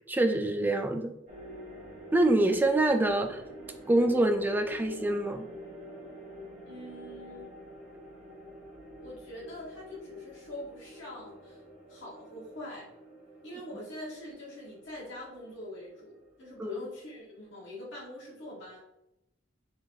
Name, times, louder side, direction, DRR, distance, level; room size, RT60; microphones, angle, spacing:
voice 1, 0.1-1.1 2.1-3.4 3.9-5.5 16.6-16.8, right 1 dB, 10° right, 5 dB, 0.3 m, -25 dB
sound 1, 1.3-17.8, equal, 35° right, 1.2 m, -48 dB
voice 2, 6.6-7.5 9.0-11.6 11.9-12.9 13.4-16.1 16.4-18.8, left 1 dB, 60° left, -6 dB, 1.4 m, -44 dB
4.0 x 3.4 x 2.6 m, 0.84 s
head